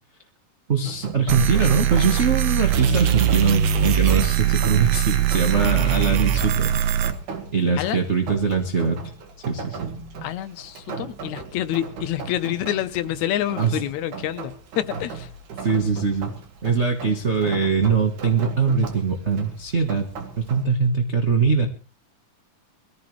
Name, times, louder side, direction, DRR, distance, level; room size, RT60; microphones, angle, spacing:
voice 1, 0.7-6.7 7.5-9.0 9.4-9.8 13.5-13.8 15.6-16.3 16.6-20.1 20.4-21.7, right 5 dB, 35° right, 3 dB, 1.1 m, -22 dB
Rain, 0.9-20.6, right 5 dB, 85° right, 3.4 m, -37 dB
sound 1, 1.3-7.1, right 10 dB, 65° right, 1.9 m, -21 dB
voice 2, 10.2-15.3, left 12 dB, 75° left, 11 dB, 2.2 m, -27 dB
22.0 x 14.5 x 3.2 m, 0.36 s
omnidirectional pair, 3.4 m